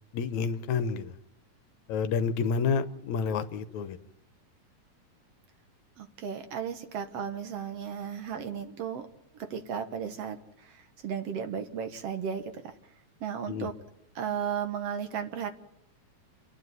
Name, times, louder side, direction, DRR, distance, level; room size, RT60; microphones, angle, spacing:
voice 1, 0.1-1.1 1.9-4.0 13.5-13.7, left 5 dB, 75° left, 12 dB, 2.3 m, -29 dB
voice 2, 6.0-9.1 9.4-12.5 13.2-13.8 14.2-15.5, right 7 dB, 60° right, 8 dB, 2.2 m, -35 dB
29.5 x 10.0 x 9.4 m, 0.76 s
omnidirectional pair, 3.3 m